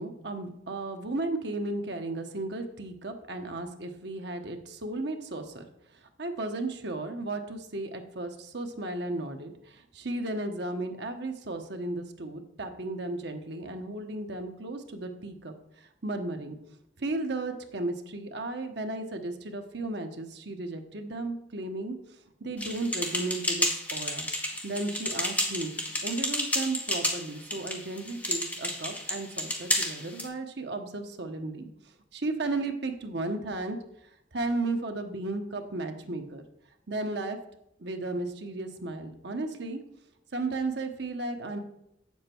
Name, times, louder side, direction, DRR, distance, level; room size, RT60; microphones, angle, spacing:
voice 1, 0.0-5.7 5.9-16.6 17.0-24.3 24.6-31.7 32.1-33.8 34.3-36.4 36.9-37.4 37.8-39.8 40.3-41.6, right 2 dB, 60° right, 5 dB, 1.1 m, -34 dB
sound 1, 22.6-30.3, left 1 dB, 10° left, 1.3 m, -31 dB
8.0 x 7.4 x 4.5 m, 0.80 s
head